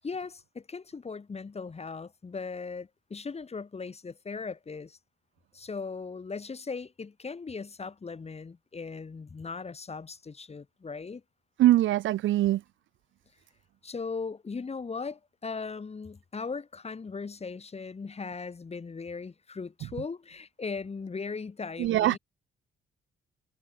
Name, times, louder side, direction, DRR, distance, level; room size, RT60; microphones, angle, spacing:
voice 1, 0.0-5.0 5.5-11.2 13.8-22.2, left 4 dB, 30° left, 4.3 m, -38 dB
voice 2, 11.6-12.6 21.8-22.2, right 14 dB, 75° right, 0.7 m, -22 dB
cardioid pair, 90°, 20 cm